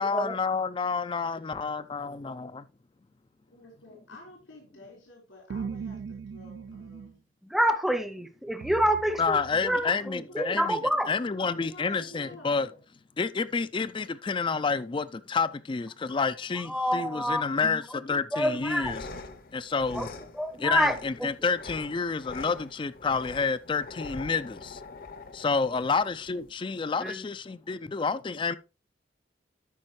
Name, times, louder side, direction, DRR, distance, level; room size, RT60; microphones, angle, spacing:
voice 1, 0.0-2.7 9.2-10.8 11.1-12.7 13.2-19.0 19.5-20.1 20.6-24.8 25.3-28.6, left 5 dB, 25° left, 0.3 m, -29 dB
voice 2, 3.5-7.2 9.9-11.2 11.6-12.8 24.9-25.0, left 2 dB, 90° left, 4.1 m, -50 dB
sound 1, 5.5-7.1 8.6-9.9, right 6 dB, 70° right, 0.3 m, -39 dB
voice 3, 7.4-9.4 9.6-11.1 16.7-17.8 18.3-18.9 19.9-20.1 20.3-20.9 21.2-21.3 27.0-27.2, equal, ahead, 0.7 m, -27 dB
sound 2, 18.5-26.5, left 3 dB, 45° left, 0.8 m, -44 dB
13.0 x 5.3 x 3.1 m
head